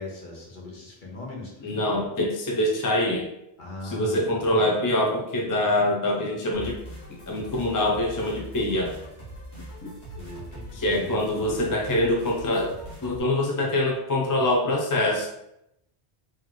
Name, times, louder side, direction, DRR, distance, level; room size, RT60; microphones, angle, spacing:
voice 1, 0.0-1.8 3.6-4.5 10.1-11.2, left 2 dB, 50° left, -3 dB, 1.2 m, -39 dB
voice 2, 1.6-3.3 3.8-6.8 7.1-8.9 10.7-12.7 13.0-15.3, left 1 dB, 30° left, -1 dB, 0.4 m, -24 dB
sound 1, 6.5-13.2, right 1 dB, 70° left, 1.6 m, -41 dB
3.1 x 3.1 x 3.8 m, 0.81 s
omnidirectional pair, 1.1 m